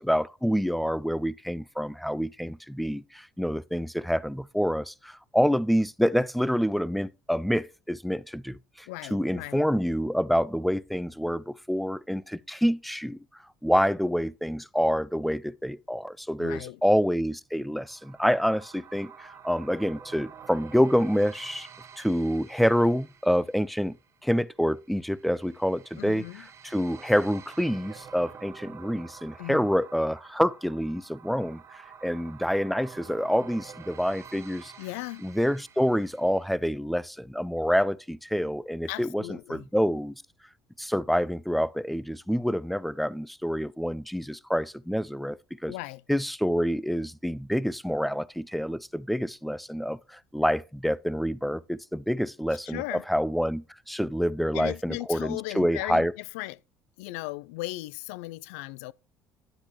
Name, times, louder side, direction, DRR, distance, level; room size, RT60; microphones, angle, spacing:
voice 1, 0.0-13.2 13.6-21.7 22.0-24.0 24.2-34.7 35.2-40.2 40.8-45.7 46.1-56.1, equal, ahead, 0.5 m, -27 dB
voice 2, 8.9-9.6 16.4-16.8 26.0-26.5 29.4-29.7 34.8-35.3 38.9-39.7 45.7-46.0 52.6-53.0 54.5-56.6 57.0-58.9, left 19 dB, 90° left, 0.4 m, -37 dB
sound 1, 17.8-36.5, right 7 dB, 45° right, 1.6 m, -49 dB
10.0 x 8.8 x 3.0 m
supercardioid pair, 85°, 7 cm